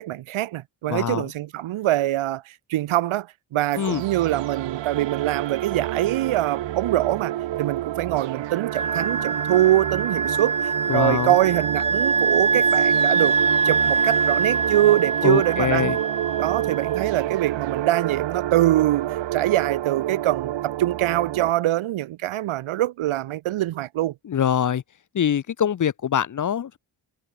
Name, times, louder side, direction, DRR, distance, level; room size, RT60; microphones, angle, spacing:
voice 1, 0.0-13.3 13.6-15.9 16.4-24.1, right 14 dB, 85° right, 1.1 m, -24 dB
voice 2, 0.9-1.3 3.8-4.0 10.9-11.3 15.2-16.0 24.2-24.8 25.1-26.8, left 9 dB, 40° left, 0.7 m, -23 dB
sound 1, 3.7-21.5, right 13 dB, 65° right, 0.8 m, -29 dB
Wind instrument woodwind instrument, 8.7-17.0, right 4 dB, 15° right, 0.3 m, -24 dB
cardioid pair, 105°, 47 cm